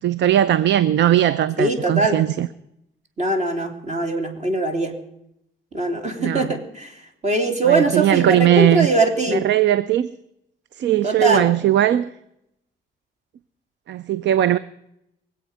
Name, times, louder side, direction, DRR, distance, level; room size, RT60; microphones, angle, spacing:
voice 1, 0.0-2.5 6.2-6.5 7.7-8.9 9.3-10.1 10.8-12.1 13.9-14.6, right 12 dB, 65° right, 0.6 m, -19 dB
voice 2, 1.6-2.2 3.2-4.9 5.7-6.9 7.2-9.5 11.0-11.5, right 2 dB, 35° right, 3.2 m, -21 dB
23.5 x 8.3 x 5.6 m
cardioid pair, 90°, 20 cm